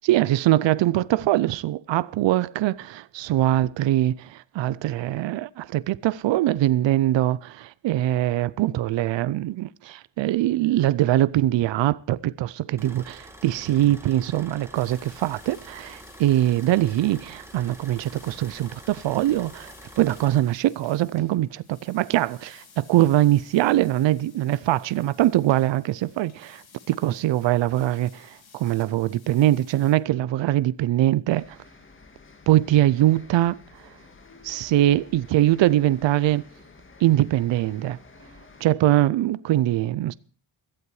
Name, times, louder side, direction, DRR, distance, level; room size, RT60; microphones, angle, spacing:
voice 1, 0.0-31.6 32.5-33.6 34.4-36.4 37.0-38.0 38.6-40.1, right 14 dB, 70° right, 0.6 m, -22 dB
sound 1, 12.8-20.4, right 1 dB, 5° right, 1.9 m, -46 dB
sound 2, 14.7-29.9, left 6 dB, 55° left, 3.3 m, -54 dB
sound 3, 31.3-38.7, left 3 dB, 25° left, 1.8 m, -51 dB
16.5 x 12.5 x 4.7 m
wide cardioid pair, 165°, 45 cm